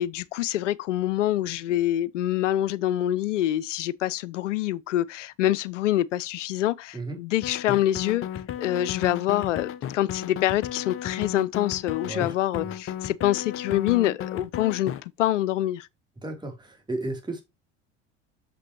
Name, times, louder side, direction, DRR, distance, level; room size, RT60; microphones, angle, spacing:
voice 1, 0.0-8.3 8.6-15.9, left 13 dB, 80° left, 0.5 m, -26 dB
sound 1, 7.4-15.0, left 10 dB, 35° left, 0.7 m, -34 dB
voice 2, 12.0-12.3 12.6-12.7 16.2-17.4, right 2 dB, 10° right, 3.0 m, -33 dB
6.7 x 5.8 x 3.0 m
figure-of-eight pair, 70°, 37 cm